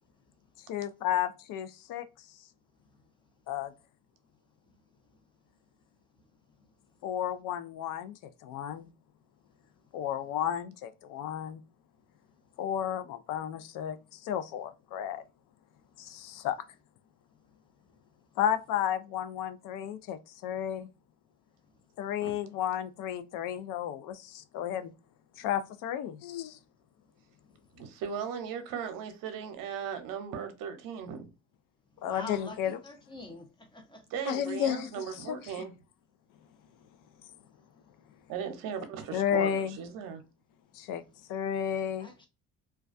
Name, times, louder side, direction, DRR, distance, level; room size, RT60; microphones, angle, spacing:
voice 1, 0.7-2.0 3.5-3.7 7.0-8.1 8.4-8.9 9.9-11.6 12.6-15.2 16.0-16.6 18.4-20.9 22.0-24.9 25.4-26.6 32.0-32.8 34.3-34.9 35.3-35.6 39.1-39.8 40.7-41.0 41.3-42.1, left 10 dB, 70° left, 0.5 m, -32 dB
voice 2, 27.8-31.3 34.1-35.7 38.3-40.2, right 7 dB, 70° right, 0.7 m, -37 dB
voice 3, 32.0-33.5 33.7-34.0 42.0-42.3, left 1 dB, 15° left, 0.6 m, -44 dB
2.3 x 2.2 x 2.4 m
cardioid pair, 105°, 34 cm